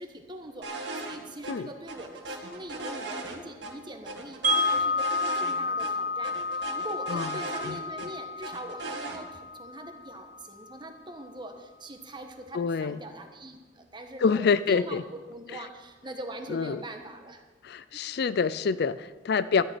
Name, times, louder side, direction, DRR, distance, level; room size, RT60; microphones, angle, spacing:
voice 1, 0.0-15.0 15.3-17.4 17.9-18.0 19.3-19.5, right 1 dB, 25° right, 5 dB, 1.3 m, -43 dB
sound 1, 0.6-1.2 1.4-1.5 1.9-3.7 4.1-5.5 5.8-5.9 6.2-8.1 8.4-9.2, right 2 dB, 80° right, 1.9 m, -37 dB
Wind chime, 4.4-10.4, left 2 dB, 50° right, 1.7 m, -30 dB
voice 2, 7.6-8.0 12.5-13.0 14.2-15.0 15.5-15.6 16.5-16.8 17.6-19.6, left 5 dB, 60° left, 15 dB, 0.4 m, -27 dB
12.5 x 7.0 x 9.0 m, 1.3 s
head